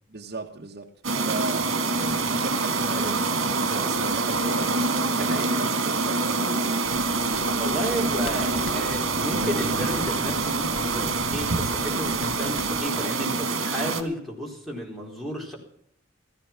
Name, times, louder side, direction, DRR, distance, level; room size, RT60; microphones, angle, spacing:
voice 1, 0.1-0.9 1.2-1.8 2.3-3.3 3.6-6.5, right 3 dB, 50° right, 1 dB, 1.2 m, -36 dB
sound 1, 1.0-14.0, right 3 dB, 75° right, 2.0 m, -25 dB
sound 2, 6.8-12.9, left 2 dB, 75° left, 1.2 m, -43 dB
voice 2, 7.6-15.6, equal, ahead, -2 dB, 4.1 m, -32 dB
15.5 x 14.5 x 5.9 m, 0.65 s
head